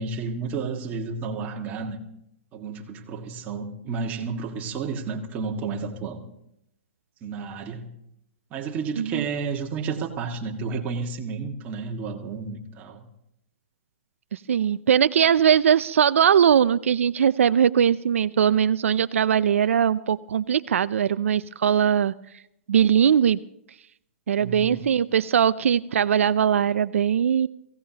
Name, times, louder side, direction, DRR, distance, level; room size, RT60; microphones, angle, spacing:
voice 1, 0.0-2.0 2.5-6.2 7.2-7.9 8.5-13.0 24.4-24.8, right 4 dB, 20° right, 1 dB, 1.8 m, -31 dB
voice 2, 14.3-22.1 22.7-23.4 24.3-27.5, right 8 dB, 85° right, 15 dB, 0.4 m, -20 dB
23.0 x 16.5 x 2.9 m, 0.78 s
hypercardioid pair, 155°, 7 cm